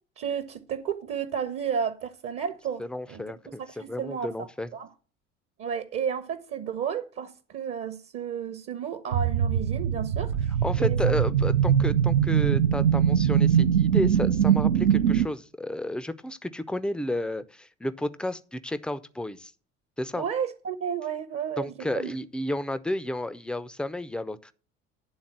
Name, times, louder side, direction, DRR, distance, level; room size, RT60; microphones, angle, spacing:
voice 1, 0.2-2.8 3.1-3.2 3.5-4.9 5.6-10.3 10.8-11.2 20.2-22.1, right 7 dB, 40° right, 0.8 m, -32 dB
voice 2, 2.8-4.7 10.6-19.5 20.0-20.2 21.6-24.5, left 1 dB, 5° left, 0.4 m, -32 dB
sound 1, 9.1-15.3, right 9 dB, 70° right, 0.6 m, -22 dB
10.5 x 3.8 x 7.3 m
figure-of-eight pair, 60°, 36 cm